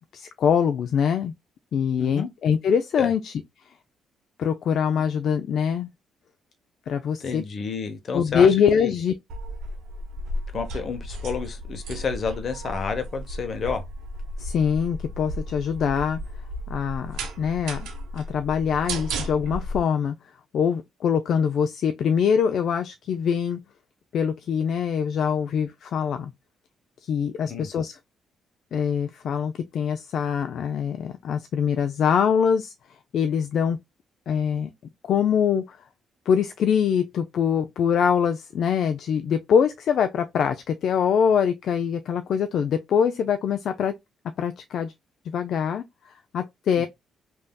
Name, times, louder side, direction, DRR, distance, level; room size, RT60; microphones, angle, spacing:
voice 1, 0.1-1.3 1.7-3.3 4.4-5.9 6.9-7.4 8.1-9.1 14.4-16.2 16.7-17.9 18.1-20.1 20.5-23.6 24.1-26.3 27.0-28.0 28.7-32.7 33.1-33.8 34.3-34.7 35.1-35.8 36.3-43.9 44.4-44.9 45.3-45.8 46.3-46.9, left 7 dB, 65° left, 0.3 m, -23 dB
voice 2, 2.0-2.3 3.0-3.1 7.2-8.5 8.7-8.9 10.5-13.8 27.4-27.7 46.8-46.9, left 5 dB, 50° left, 0.8 m, -30 dB
sound 1, 9.3-19.8, right 1 dB, 85° right, 0.7 m, -34 dB
3.4 x 2.6 x 2.2 m
cardioid pair, 90°, 0 cm